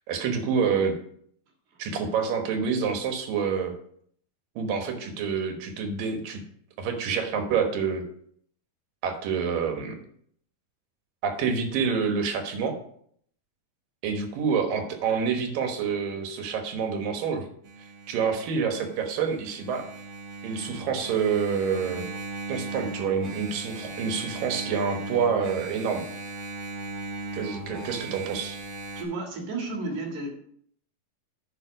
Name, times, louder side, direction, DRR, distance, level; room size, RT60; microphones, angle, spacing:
voice 1, 0.1-1.0 1.8-3.7 4.6-6.4 6.8-8.0 9.0-10.0 11.2-12.7 14.0-17.5 18.1-19.8 20.4-22.0 22.5-26.1 27.3-28.6, right 6 dB, 85° right, 5 dB, 3.0 m, -27 dB
Engine, 17.6-29.0, right 3 dB, 50° right, 1.8 m, -38 dB
voice 2, 29.0-30.3, right 2 dB, 65° right, 1 dB, 3.3 m, -32 dB
9.8 x 5.4 x 5.1 m, 0.64 s
omnidirectional pair, 3.9 m